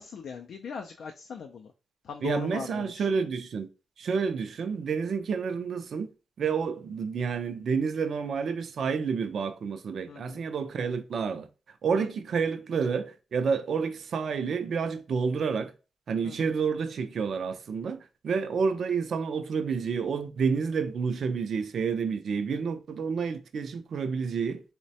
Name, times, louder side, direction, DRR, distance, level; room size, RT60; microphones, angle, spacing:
voice 1, 0.0-1.7 2.0-3.1 10.1-10.4 12.0-12.1 16.2-16.4, left 6 dB, 65° left, 0.3 m, -39 dB
voice 2, 2.2-3.7 4.0-6.1 6.4-11.5 11.8-15.7 16.1-24.6, right 5 dB, 60° right, 0.4 m, -29 dB
3.1 x 2.1 x 2.7 m
cardioid pair, 65°, 0 cm